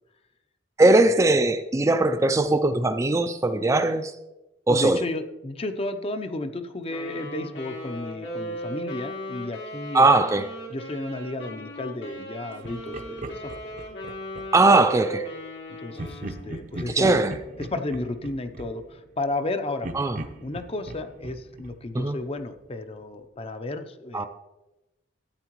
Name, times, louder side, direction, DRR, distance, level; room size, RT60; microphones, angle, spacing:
voice 1, 0.8-4.1 4.7-5.0 9.9-10.5 14.5-15.3 16.9-17.3 19.9-20.2 21.9-22.2 24.1-24.3, right 2 dB, 15° right, 9 dB, 0.4 m, -20 dB
voice 2, 4.7-10.1 10.7-13.5 15.8-17.2 17.6-19.9 20.4-24.3, left 2 dB, 35° left, 9 dB, 0.6 m, -32 dB
Wind instrument woodwind instrument, 6.9-16.5, equal, 90° left, 2.6 m, -37 dB
Laughter, 12.6-14.8 15.9-19.4 19.8-22.6, right 1 dB, 45° right, 0.7 m, -39 dB
13.0 x 8.9 x 3.0 m, 0.99 s
head